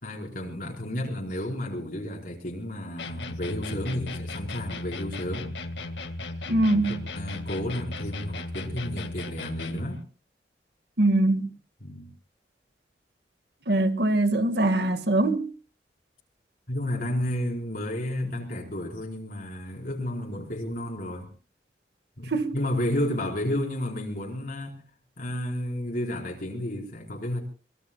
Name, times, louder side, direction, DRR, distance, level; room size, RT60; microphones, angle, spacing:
voice 1, 0.0-5.5 6.8-10.0 11.8-12.1 16.7-21.3 22.2-24.8 25.2-27.4, left 1 dB, 50° left, 4.7 m, -32 dB
sound 1, 3.0-10.0, left 2 dB, 90° left, 2.0 m, -36 dB
voice 2, 6.5-7.0 11.0-11.5 13.7-15.5 22.3-22.5, right 2 dB, 65° right, 1.8 m, -22 dB
24.0 x 22.5 x 2.3 m
head